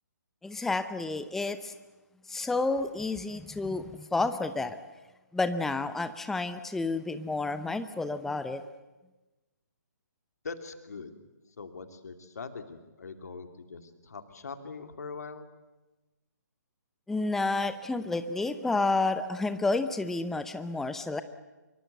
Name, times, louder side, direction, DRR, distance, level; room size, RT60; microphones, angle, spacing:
voice 1, 0.4-1.7 2.3-4.8 5.3-8.6 17.1-21.2, left 3 dB, 5° left, 11 dB, 0.7 m, -30 dB
voice 2, 10.4-11.1 11.6-15.5, left 4 dB, 60° left, 7 dB, 2.6 m, -42 dB
25.0 x 23.5 x 8.1 m, 1.1 s
figure-of-eight pair, 135°, 10 cm